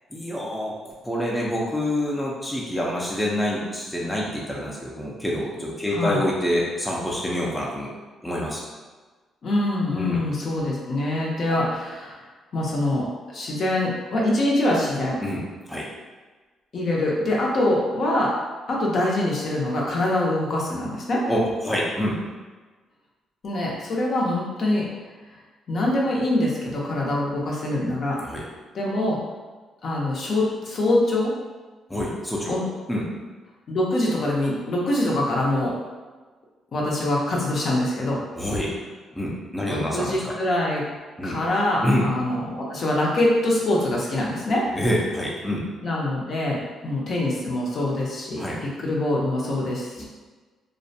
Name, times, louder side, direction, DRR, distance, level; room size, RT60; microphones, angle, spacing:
voice 1, 0.1-0.8 1.0-7.9 8.2-8.7 9.9-10.2 15.2-15.4 15.7-15.9 21.3-22.2 28.2-28.4 31.9-32.6 32.9-33.1 38.4-38.8 39.1-40.4 41.2-41.4 41.8-42.1 44.7-45.7 48.4-48.6 50.0-50.1, left 1 dB, 5° left, -4 dB, 0.5 m, -26 dB
voice 2, 5.9-6.2 9.4-12.2 12.5-13.1 13.3-15.2 16.7-18.3 18.7-21.2 23.4-24.9 25.7-28.2 28.7-29.2 29.8-31.3 32.5-32.6 33.7-35.7 36.7-38.2 39.7-40.8 41.2-44.6 45.8-48.4 48.8-50.0, left 1 dB, 55° left, -3 dB, 0.6 m, -24 dB
2.4 x 2.1 x 2.7 m, 1.3 s
cardioid pair, 90°, 0 cm